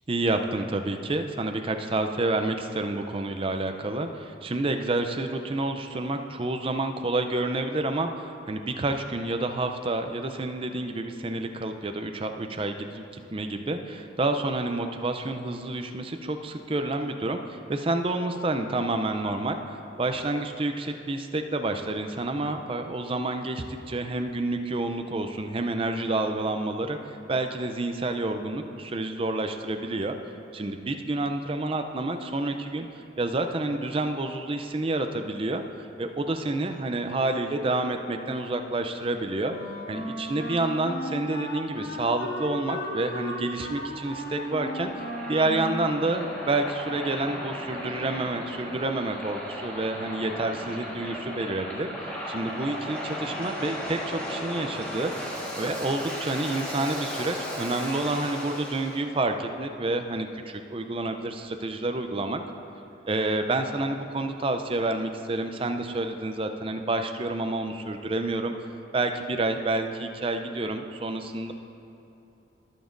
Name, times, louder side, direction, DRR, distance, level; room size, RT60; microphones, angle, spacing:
voice 1, 0.1-19.6 20.0-30.2 30.5-32.9 33.2-35.6 36.0-39.5 39.9-44.9 45.3-51.9 52.3-55.1 55.6-62.4 63.1-68.5 68.9-71.5, right 2 dB, 25° right, 6 dB, 0.4 m, -29 dB
Wind instrument woodwind instrument, 39.5-46.9, left 1 dB, 55° left, 1.1 m, -36 dB
Waves surf, 43.4-59.0, equal, 5° left, 1.4 m, -36 dB
19.5 x 7.1 x 2.6 m, 2.8 s
head